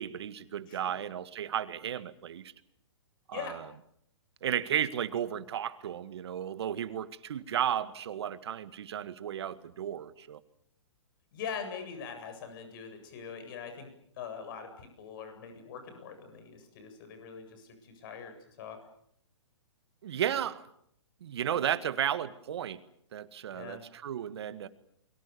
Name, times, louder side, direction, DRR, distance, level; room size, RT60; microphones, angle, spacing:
voice 1, 0.0-2.5 3.3-3.6 4.4-10.4 20.0-20.7 21.2-22.8 23.1-24.7, right 9 dB, 60° right, 13 dB, 1.9 m, -34 dB
voice 2, 0.7-1.0 3.3-3.6 11.3-13.9 14.2-18.8 23.5-23.8, left 6 dB, 45° left, 7 dB, 8.0 m, -42 dB
30.0 x 23.5 x 7.0 m, 0.70 s
hypercardioid pair, 135°, 15 cm